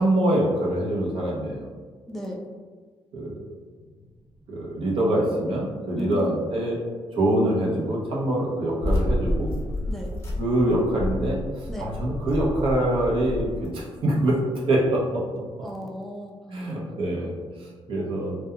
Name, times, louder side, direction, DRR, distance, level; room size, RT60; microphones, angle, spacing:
voice 1, 0.0-1.7 3.1-3.3 4.5-6.8 7.1-9.6 10.4-14.4 14.7-15.2 16.5-18.3, right 1 dB, 65° right, -3 dB, 0.7 m, -24 dB
voice 2, 2.1-2.4 5.9-6.3 9.9-10.1 11.7-11.9 15.6-16.3 16.7-16.8 18.0-18.1, left 2 dB, 5° left, -2 dB, 0.4 m, -35 dB
sound 1, 8.8-13.7, left 1 dB, 25° left, 0.8 m, -29 dB
2.4 x 2.2 x 2.7 m, 1.5 s
cardioid pair, 105°, 10 cm